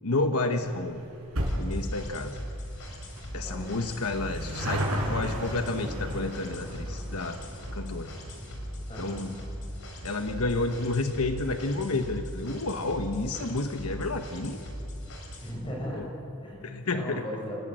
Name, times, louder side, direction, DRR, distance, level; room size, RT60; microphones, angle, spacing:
voice 1, 0.0-1.0 1.5-2.4 3.3-7.4 7.7-8.1 9.0-9.4 10.0-14.6 15.9-16.0 16.6-17.2, left 2 dB, 85° left, 6 dB, 1.2 m, -30 dB
sound 1, 0.6-13.3 13.6-13.7 14.6-14.7 14.9-15.0 15.3-15.4, equal, 75° right, 5.5 m, -37 dB
sound 2, 1.5-15.5, equal, 60° left, 4.8 m, -39 dB
voice 2, 3.2-4.0 8.9-9.2 15.4-16.6 16.9-17.6, equal, 25° left, -2 dB, 6.8 m, -37 dB
30.0 x 15.5 x 7.7 m, 2.8 s
head